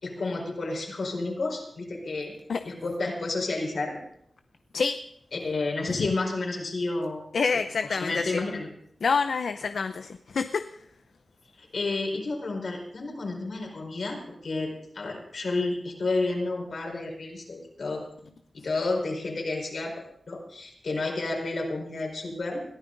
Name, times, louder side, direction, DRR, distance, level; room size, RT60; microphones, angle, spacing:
voice 1, 0.0-2.3 2.6-4.0 5.3-7.2 7.9-8.7 11.6-18.0 18.6-20.0 20.3-22.6, left 3 dB, 70° left, 0 dB, 4.7 m, -31 dB
voice 2, 7.3-8.4 9.0-10.7, left 5 dB, 85° left, 9 dB, 0.6 m, -27 dB
21.5 x 14.5 x 4.0 m, 0.71 s
wide cardioid pair, 120°, 0 cm